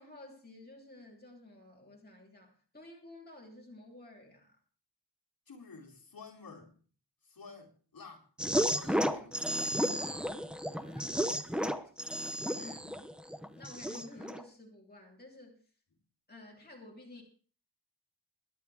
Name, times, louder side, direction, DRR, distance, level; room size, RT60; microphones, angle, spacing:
voice 1, 0.0-4.6 9.6-11.7 12.6-12.9 13.5-15.7 16.3-17.2, left 2 dB, 20° left, 3.4 m, -53 dB
voice 2, 5.5-6.8 7.2-8.3 8.7-9.5 10.0-10.3 12.5-12.8, left 4 dB, 55° left, 3.6 m, -51 dB
sound 1, 8.4-14.4, equal, ahead, 0.8 m, -33 dB
23.5 x 10.0 x 3.5 m
wide cardioid pair, 130°, 42 cm